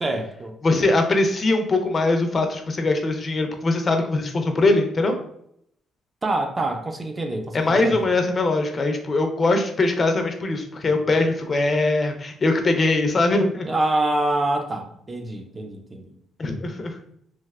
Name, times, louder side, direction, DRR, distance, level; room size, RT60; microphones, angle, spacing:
voice 1, 0.0-0.5 6.2-8.1 13.6-16.1, right 2 dB, 25° right, 4 dB, 0.4 m, -26 dB
voice 2, 0.6-5.1 7.5-13.7 16.4-16.9, left 2 dB, 40° left, 5 dB, 0.5 m, -21 dB
3.2 x 2.6 x 2.3 m, 0.71 s
cardioid pair, 90°, 0 cm